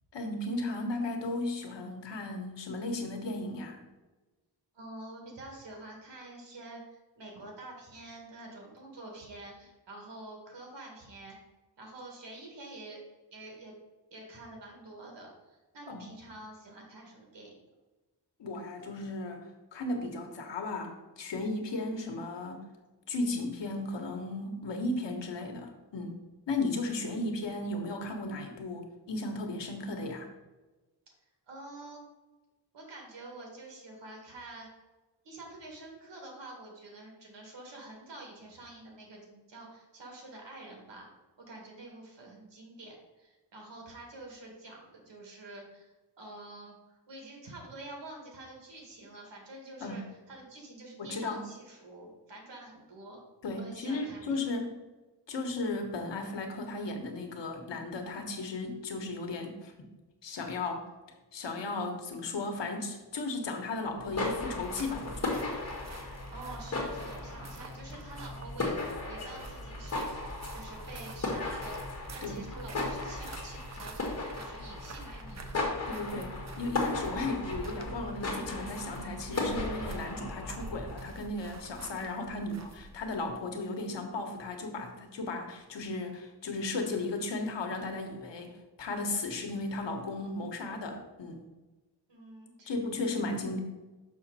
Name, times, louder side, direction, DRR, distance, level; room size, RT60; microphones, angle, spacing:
voice 1, 0.1-3.8 15.9-16.1 18.4-19.4 19.7-22.7 23.1-26.2 26.5-30.3 49.8-50.0 51.0-51.4 53.4-54.8 55.3-59.9 60.2-60.8 61.3-65.5 72.2-72.4 75.9-91.4 92.7-93.6, left 2 dB, 85° left, 4 dB, 1.2 m, -35 dB
voice 2, 4.7-11.4 11.8-13.0 13.3-13.8 14.1-17.6 31.1-31.2 31.5-32.1 32.7-34.7 35.2-41.1 41.4-53.2 53.5-54.4 66.3-68.8 69.0-71.8 72.1-75.7 92.1-92.8, right 2 dB, 85° right, 0 dB, 2.2 m, -47 dB
sound 1, 63.9-81.2, left 2 dB, 35° left, 1.8 m, -36 dB
sound 2, 64.5-83.4, right 3 dB, 40° right, 0.7 m, -48 dB
6.2 x 6.1 x 4.1 m, 1.2 s
wide cardioid pair, 150°, 42 cm